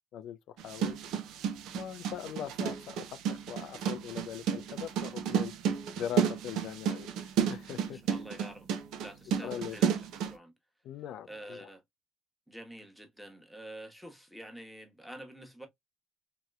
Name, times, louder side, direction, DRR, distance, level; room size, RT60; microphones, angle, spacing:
voice 1, 0.1-1.0 1.7-5.5 6.0-8.0 9.4-9.8 10.8-11.6, left 10 dB, 70° left, 0.3 m, -41 dB
sound 1, 0.6-10.3, right 8 dB, 80° right, 0.5 m, -32 dB
voice 2, 7.9-8.7 9.0-9.9 10.2-10.5 11.3-11.8 12.5-15.7, right 1 dB, ahead, 1.0 m, -47 dB
3.0 x 2.8 x 2.2 m
cardioid pair, 90°, 0 cm